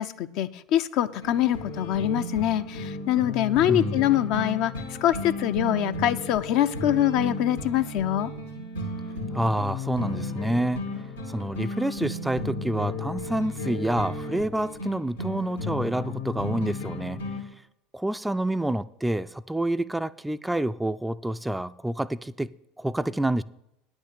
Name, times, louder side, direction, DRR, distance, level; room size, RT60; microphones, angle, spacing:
voice 1, 0.0-4.7 5.0-8.3, left 12 dB, 55° left, 0.6 m, -24 dB
sound 1, 1.2-17.4, left 2 dB, 90° left, 2.3 m, -34 dB
voice 2, 3.6-4.0 9.3-10.8 11.3-17.2 17.9-22.5 22.8-23.4, right 1 dB, 5° right, 0.4 m, -28 dB
10.0 x 5.3 x 8.4 m
figure-of-eight pair, 70°, 0 cm